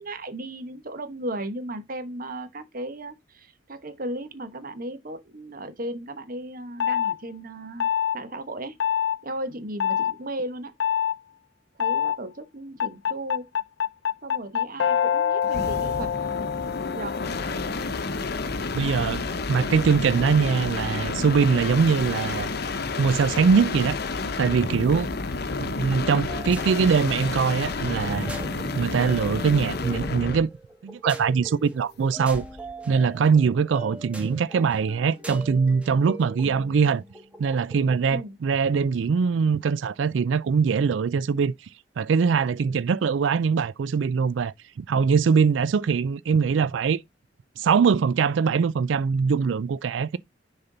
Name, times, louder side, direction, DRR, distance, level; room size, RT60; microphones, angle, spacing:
voice 1, 0.0-7.9 8.1-8.8 9.2-10.7 11.8-13.5 14.2-16.1 16.9-17.2 24.9-25.2 38.1-38.3, right 1 dB, 50° right, 1.1 m, -35 dB
sound 1, 6.8-7.2 7.8-8.2 8.8-9.2 9.8-10.1 10.8-11.2 11.8-12.2 12.8-17.9, left 8 dB, 85° left, 0.5 m, -25 dB
sound 2, 15.4-30.5 32.3-32.7, left 3 dB, 60° left, 0.8 m, -30 dB
voice 2, 18.7-22.5 23.0-24.0 24.4-25.1 25.6-28.3 28.7-30.5 30.8-32.4 32.9-37.0 37.4-41.5 42.0-47.0 47.6-50.2, right 5 dB, 85° right, 0.4 m, -22 dB
sound 3, 25.9-38.1, right 1 dB, 5° right, 1.7 m, -42 dB
6.6 x 4.3 x 3.9 m
head